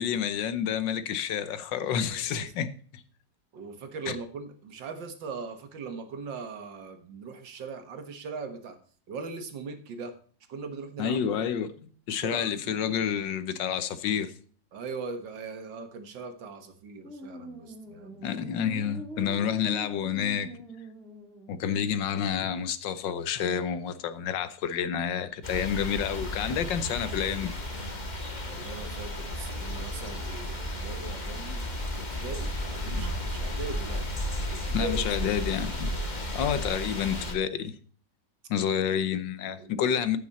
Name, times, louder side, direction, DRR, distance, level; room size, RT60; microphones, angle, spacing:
voice 1, 0.0-3.0 4.1-4.2 11.0-11.7 12.1-14.3 18.2-20.5 21.5-27.5 32.9-33.0 34.7-35.9 36.3-37.7 38.5-40.2, left 8 dB, 75° left, 1.6 m, -29 dB
voice 2, 2.0-2.5 3.5-8.8 9.1-10.1 10.5-11.3 12.1-12.7 14.7-18.4 28.5-31.7 32.0-34.0 34.5-35.1 35.9-36.4 39.6-40.2, right 4 dB, 80° right, 2.1 m, -40 dB
sound 1, 17.0-21.9, equal, ahead, 1.9 m, -43 dB
sound 2, 25.4-37.3, left 1 dB, 25° left, 1.6 m, -33 dB
14.5 x 6.2 x 4.2 m
omnidirectional pair, 2.0 m